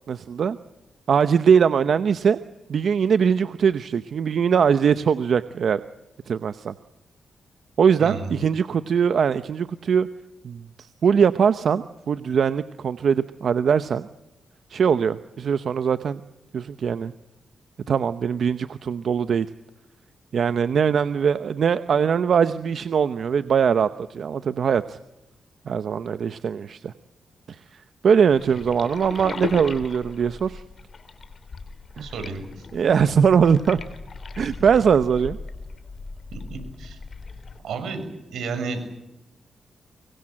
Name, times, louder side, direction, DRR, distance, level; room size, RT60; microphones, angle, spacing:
voice 1, 0.1-0.6 1.1-2.4 2.7-5.8 6.3-6.7 7.8-10.1 10.4-14.1 14.7-16.2 16.5-17.1 17.9-19.5 20.3-25.0 25.7-26.9 27.5-30.6 32.0-32.1 32.7-33.8 34.4-35.4, right 7 dB, 65° right, 12 dB, 0.8 m, -21 dB
voice 2, 8.0-8.3 32.0-32.4 36.3-37.0 37.6-38.0 38.3-38.9, right 4 dB, 90° right, 8 dB, 6.1 m, -31 dB
sound 1, 28.3-37.6, left 4 dB, 45° left, 3.4 m, -37 dB
25.0 x 22.5 x 7.7 m, 0.96 s
cardioid pair, 105°, 0 cm